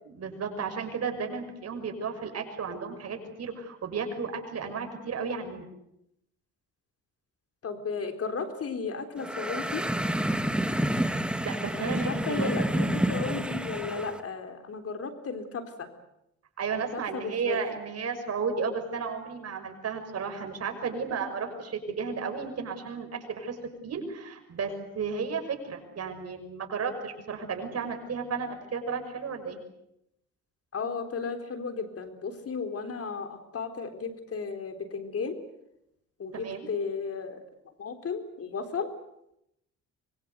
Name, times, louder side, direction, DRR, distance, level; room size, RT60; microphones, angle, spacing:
voice 1, 0.0-5.7 11.2-12.5 16.6-23.6 23.8-29.6 36.3-36.7, right 5 dB, 55° right, 5 dB, 6.3 m, -33 dB
voice 2, 7.6-9.8 11.8-15.9 16.9-17.6 30.7-35.4 36.2-37.4 37.8-38.9, left 5 dB, 50° left, 7 dB, 4.0 m, -34 dB
sound 1, 9.2-14.2, right 1 dB, 5° right, 2.1 m, -29 dB
25.0 x 23.0 x 8.2 m, 0.82 s
cardioid pair, 90°, 30 cm